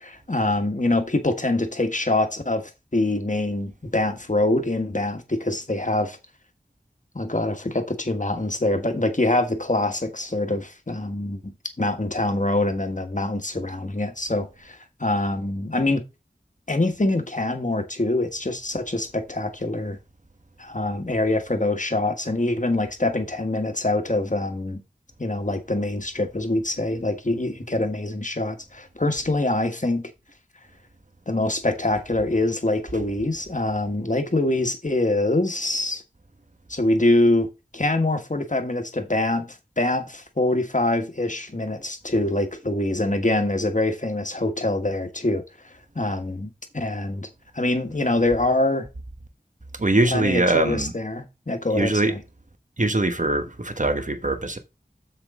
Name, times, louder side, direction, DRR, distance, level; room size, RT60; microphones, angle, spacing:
voice 1, 0.0-6.2 7.1-16.0 16.7-20.0 20.6-24.8 25.2-30.1 31.3-36.0 36.7-37.5 37.7-39.5 39.8-45.4 45.9-47.3 47.5-48.9 50.1-52.2, left 2 dB, 45° left, 1.6 m, -24 dB
voice 2, 49.8-50.9 51.7-52.1 52.8-54.6, right 2 dB, 45° right, 1.3 m, -22 dB
7.3 x 6.9 x 3.7 m
wide cardioid pair, 40°, 18 cm